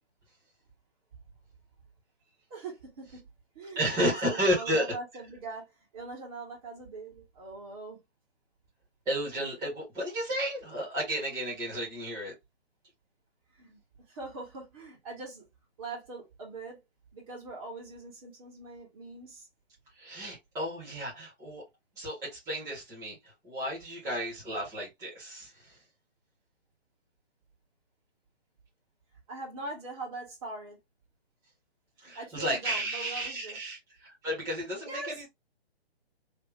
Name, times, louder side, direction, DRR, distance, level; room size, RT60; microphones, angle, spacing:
voice 1, 2.5-3.3 3.5-4.2 4.4-8.0 9.6-9.7 13.5-13.8 14.1-15.5 15.8-16.8 17.1-19.5 29.3-30.8 32.0-33.6 34.9-35.2, right 3 dB, 35° right, 2.1 m, -42 dB
voice 2, 3.8-4.9 9.1-12.3 20.0-21.6 22.0-23.2 23.4-25.8 32.0-35.3, equal, 10° right, 1.8 m, -32 dB
3.5 x 3.0 x 3.2 m
hypercardioid pair, 150°, 32 cm